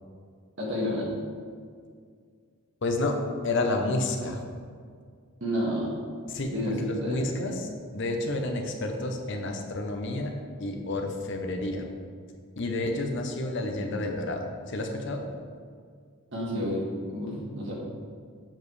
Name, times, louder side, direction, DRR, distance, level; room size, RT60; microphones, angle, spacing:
voice 1, 0.6-1.1 5.4-5.9 6.5-7.2 16.3-17.7, equal, 55° right, -4 dB, 1.9 m, -30 dB
voice 2, 2.8-3.2 3.4-4.4 6.3-10.3 10.6-11.9 12.6-15.2, left 2 dB, 55° left, 3 dB, 0.8 m, -30 dB
7.4 x 7.0 x 3.2 m, 2.1 s
head